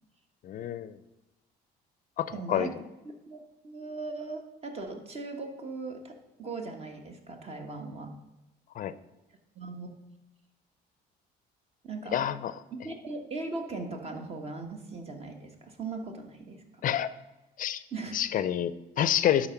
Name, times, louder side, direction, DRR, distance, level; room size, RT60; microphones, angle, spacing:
voice 1, 0.4-1.0 2.2-2.7 8.8-8.9 12.1-12.5 16.8-17.1 17.6-17.8 18.1-19.5, left 10 dB, 55° left, 15 dB, 0.5 m, -28 dB
voice 2, 2.3-2.8 3.3-8.2 9.5-9.9 11.8-12.2 12.7-16.8 17.9-18.3, right 3 dB, 35° right, 5 dB, 1.4 m, -39 dB
11.0 x 4.2 x 5.8 m, 1.0 s
cardioid pair, 110°, 17 cm